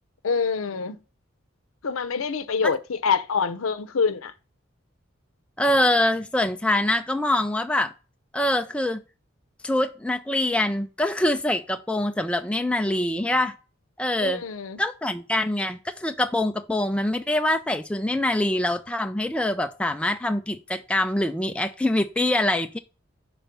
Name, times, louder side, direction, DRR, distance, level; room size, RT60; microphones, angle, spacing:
voice 1, 0.2-1.0 1.8-4.3 14.2-14.8, left 5 dB, 90° left, 0.6 m, -25 dB
voice 2, 5.6-7.9 8.3-9.0 9.6-13.5 14.0-14.4 14.8-22.8, left 1 dB, 5° left, 0.3 m, -24 dB
5.8 x 4.0 x 5.2 m
head